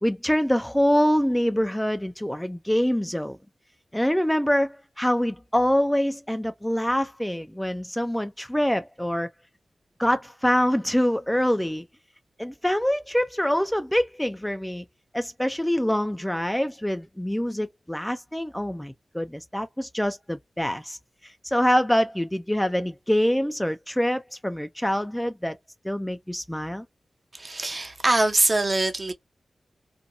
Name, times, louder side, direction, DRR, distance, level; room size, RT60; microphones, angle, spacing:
voice 1, 0.0-3.4 3.9-9.3 10.0-11.8 12.4-14.8 15.1-25.6 25.8-26.8, equal, 5° left, 0.3 m, -25 dB
voice 2, 27.3-29.1, right 2 dB, 45° right, 0.7 m, -23 dB
2.5 x 2.2 x 2.7 m
cardioid pair, 45°, 0 cm